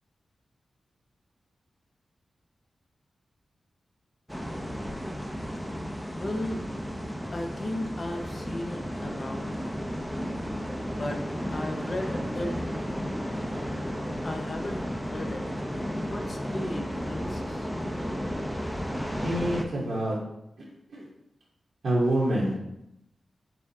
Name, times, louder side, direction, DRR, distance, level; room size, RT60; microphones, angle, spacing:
sound 1, 4.3-19.6, equal, ahead, 0.5 m, -33 dB
voice 1, 6.2-6.6 7.3-9.6 10.9-12.5 14.2-15.5 16.0-17.7, left 1 dB, 50° left, 3 dB, 0.6 m, -35 dB
voice 2, 19.2-20.2 20.9-21.0 21.8-22.6, right 1 dB, 75° right, -7 dB, 0.9 m, -26 dB
4.2 x 3.5 x 2.7 m, 0.83 s
cardioid pair, 55°, 0 cm